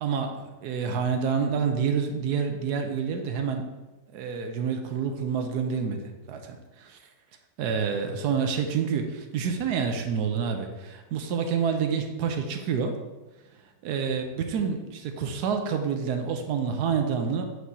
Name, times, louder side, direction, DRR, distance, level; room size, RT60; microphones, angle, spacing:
voice 1, 0.0-3.7 4.1-7.0 7.6-13.0 13.8-17.4, right 6 dB, 85° right, 5 dB, 1.2 m, -28 dB
7.9 x 4.6 x 2.7 m, 1.1 s
omnidirectional pair, 1.7 m